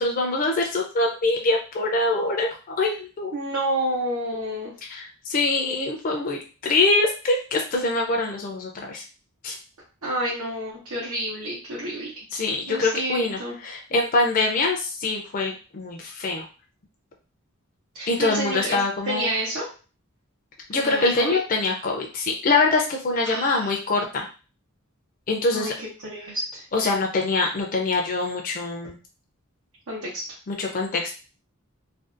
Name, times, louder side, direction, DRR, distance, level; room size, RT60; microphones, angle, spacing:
voice 1, 0.0-3.3 4.9-9.0 9.4-9.6 12.3-16.4 18.1-19.3 20.7-24.3 25.3-25.7 26.7-29.0 30.5-31.1, left 3 dB, 40° left, 1 dB, 0.4 m, -24 dB
voice 2, 3.3-4.7 10.0-12.1 12.7-13.5 17.9-18.8 19.1-19.6 20.7-21.4 23.2-23.7 25.5-26.6 29.9-30.2, right 1 dB, 85° right, -6 dB, 0.9 m, -29 dB
2.5 x 2.3 x 2.4 m, 0.35 s
head